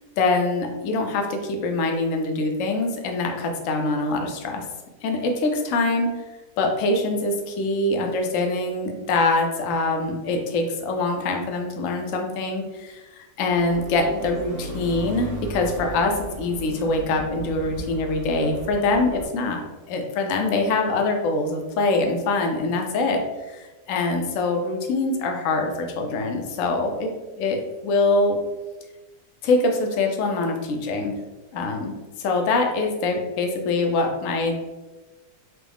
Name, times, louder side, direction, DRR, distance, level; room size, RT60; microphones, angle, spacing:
voice 1, 0.2-4.6 5.0-6.1 6.6-19.6 19.9-23.6 23.9-28.4 29.4-31.2 31.5-34.6, left 3 dB, 65° left, 3 dB, 0.8 m, -24 dB
sound 1, 13.4-19.2, right 2 dB, 60° right, 1.0 m, -36 dB
4.6 x 2.0 x 3.3 m, 1.2 s
omnidirectional pair, 1.8 m